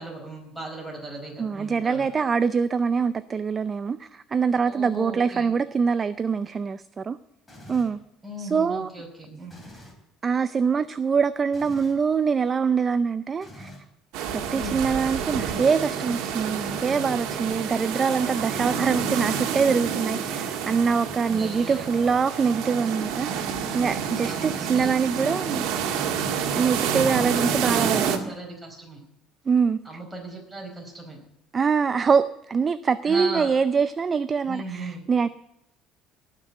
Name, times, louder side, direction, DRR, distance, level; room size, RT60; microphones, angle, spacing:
voice 1, 0.0-2.0 4.6-5.5 8.2-9.6 14.5-14.8 18.7-19.0 21.2-21.9 24.2-25.0 26.5-29.0 29.8-31.2 33.0-33.5 34.5-35.1, right 2 dB, 10° right, -1 dB, 4.8 m, -37 dB
voice 2, 1.4-7.2 7.7-8.0 8.4-8.9 10.2-13.7 14.3-23.3 23.7-25.7 26.5-28.3 29.5-30.0 31.5-35.3, right 5 dB, 25° right, 13 dB, 0.5 m, -24 dB
sound 1, 7.5-8.0 9.5-10.0 11.5-12.0 13.4-13.9 15.3-15.8 18.1-22.5, left 1 dB, 10° left, 3.4 m, -45 dB
sound 2, 14.1-28.2, right 7 dB, 70° right, 1.8 m, -28 dB
18.0 x 6.1 x 8.0 m, 0.84 s
cardioid pair, 135°, 0 cm